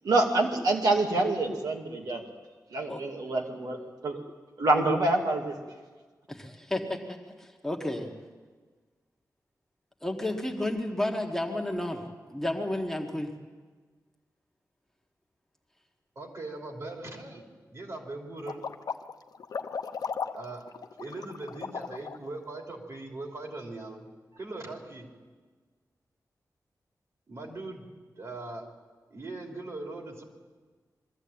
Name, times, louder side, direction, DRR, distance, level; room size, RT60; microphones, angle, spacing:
voice 1, 0.0-2.2 2.7-4.2 4.6-5.5, right 2 dB, 75° right, 1 dB, 2.4 m, -26 dB
voice 2, 6.3-7.0 7.4-8.1 10.0-12.0 12.3-13.3, left 1 dB, 5° left, 1 dB, 1.5 m, -31 dB
voice 3, 16.1-17.4 17.7-18.6 20.3-20.6 21.0-24.0 24.3-25.1 27.3-27.8 28.2-28.6 29.1-30.2, right 2 dB, 50° right, 1 dB, 3.3 m, -40 dB
sound 1, 18.4-22.3, left 6 dB, 75° left, 0.7 m, -36 dB
21.5 x 14.0 x 8.8 m, 1.4 s
wide cardioid pair, 165°, 6 cm